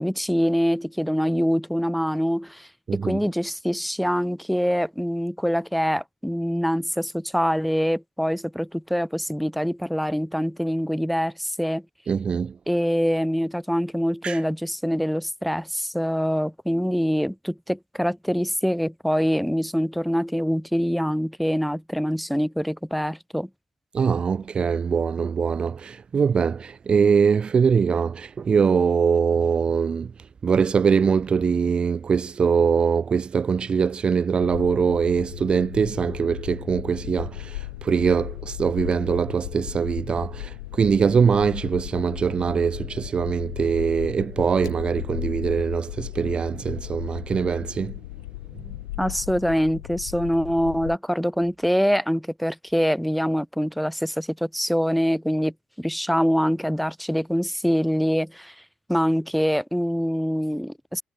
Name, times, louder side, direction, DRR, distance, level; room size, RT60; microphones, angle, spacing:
voice 1, 0.0-11.8 12.7-23.5 49.0-58.5 58.9-61.0, equal, ahead, 1.9 m, -24 dB
voice 2, 2.9-3.2 12.1-12.6 14.2-14.4 23.9-48.0 48.6-48.7, right 6 dB, 40° right, 0.6 m, -22 dB
sound 1, 34.4-51.0, left 18 dB, 85° left, 1.8 m, -36 dB
hypercardioid pair, 45°, 3 cm